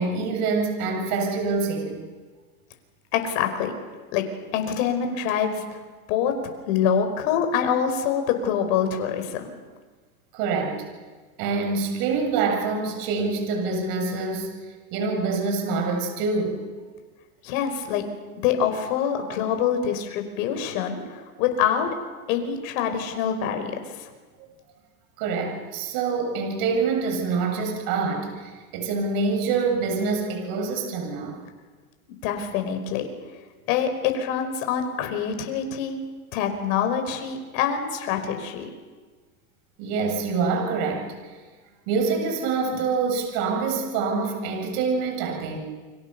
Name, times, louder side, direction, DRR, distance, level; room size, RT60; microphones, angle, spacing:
voice 1, 0.0-2.1 10.3-10.8 11.4-14.5 14.9-16.6 25.2-31.4 39.8-41.1 41.9-45.6, right 4 dB, 50° right, 3 dB, 7.9 m, -26 dB
voice 2, 3.1-3.7 4.1-4.3 4.5-5.8 6.1-6.3 6.7-9.6 17.4-18.1 18.4-21.9 22.3-24.0 32.2-33.1 33.7-36.0 36.3-38.7, left 8 dB, 60° left, 6 dB, 5.1 m, -25 dB
29.5 x 24.5 x 7.0 m, 1.4 s
supercardioid pair, 120°, 43 cm